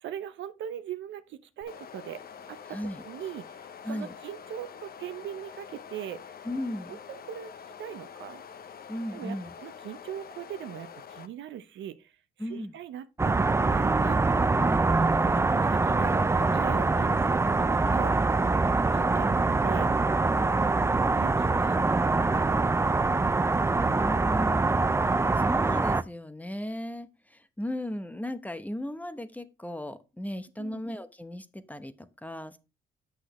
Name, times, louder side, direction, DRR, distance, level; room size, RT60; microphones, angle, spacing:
voice 1, 0.0-2.2 2.5-2.8 3.0-6.4 6.9-7.5 7.8-8.4 9.1-14.4 15.2-18.2 18.9-19.9 21.2-22.7 23.4-24.6 30.6-30.8, right 10 dB, 70° right, 0.7 m, -41 dB
sound 1, 1.6-11.3, left 7 dB, 50° left, 0.8 m, -46 dB
voice 2, 2.7-3.0 3.8-4.1 6.4-7.0 8.9-9.5 12.4-12.8 14.6-14.9 19.1-19.3 20.3-20.6 23.9-24.6 25.0-32.6, left 1 dB, 10° left, 0.8 m, -36 dB
sound 2, 13.2-26.0, right 3 dB, 15° right, 0.4 m, -24 dB
8.0 x 6.3 x 3.1 m
cardioid pair, 90°, 20 cm